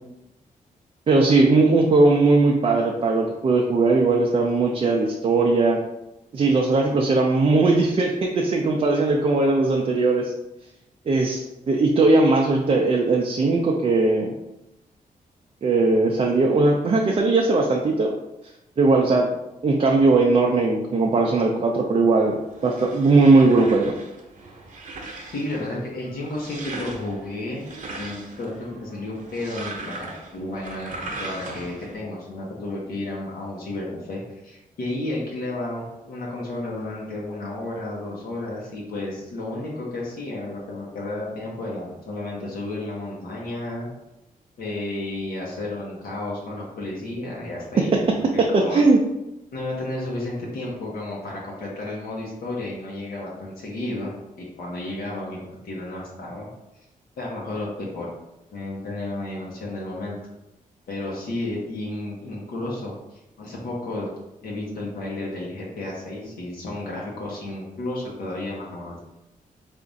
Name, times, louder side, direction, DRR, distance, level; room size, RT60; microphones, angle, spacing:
voice 1, 1.1-5.8 6.3-10.3 11.1-14.3 15.6-18.1 18.8-19.3 19.6-23.9 47.9-48.0 48.4-49.0, right 3 dB, 40° right, 0 dB, 0.4 m, -19 dB
sound 1, 22.3-32.0, right 2 dB, 60° right, 0.9 m, -39 dB
voice 2, 25.3-27.7 28.0-43.9 44.6-47.9 48.3-48.8 49.5-54.1 54.4-56.5 57.2-58.1 58.5-60.2 60.9-64.1 64.4-69.0, left 2 dB, 85° left, -4 dB, 0.9 m, -32 dB
3.5 x 2.4 x 3.9 m, 0.92 s
cardioid pair, 110°, 15 cm